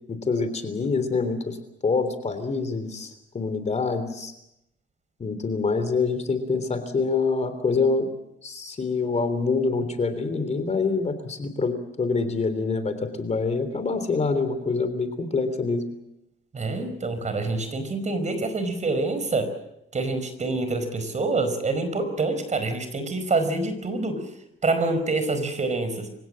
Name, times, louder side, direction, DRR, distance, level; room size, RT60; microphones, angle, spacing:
voice 1, 0.1-1.6 1.8-4.3 5.2-8.1 8.4-15.8, left 4 dB, 35° left, 10 dB, 3.4 m, -26 dB
voice 2, 16.5-19.5 19.9-24.2 24.6-26.1, right 3 dB, 35° right, 10 dB, 4.8 m, -26 dB
26.5 x 16.5 x 7.5 m, 0.84 s
cardioid pair, 90°, 20 cm